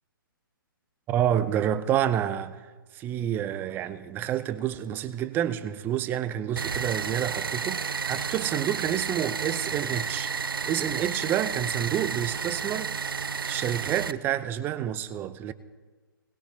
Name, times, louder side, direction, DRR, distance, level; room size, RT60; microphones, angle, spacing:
voice 1, 1.1-2.7 2.9-10.3 10.7-13.0 13.4-15.5, right 10 dB, 15° right, 0.6 m, -29 dB
sound 1, 6.6-14.1, right 6 dB, 75° right, 0.5 m, -31 dB
20.0 x 19.5 x 2.8 m
figure-of-eight pair, 130°, 12 cm